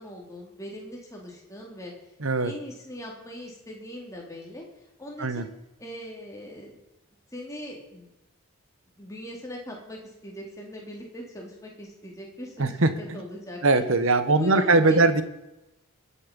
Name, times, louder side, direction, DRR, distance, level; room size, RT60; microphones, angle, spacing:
voice 1, 0.0-1.9 2.4-4.6 5.0-5.5 5.8-6.7 7.3-8.1 9.0-10.0 10.2-13.8 14.3-15.1, equal, 15° left, -1 dB, 3.1 m, -40 dB
voice 2, 2.2-2.5 5.2-5.5 12.6-13.2 13.6-15.2, right 3 dB, 65° right, 11 dB, 1.2 m, -21 dB
23.5 x 8.6 x 5.4 m, 0.92 s
head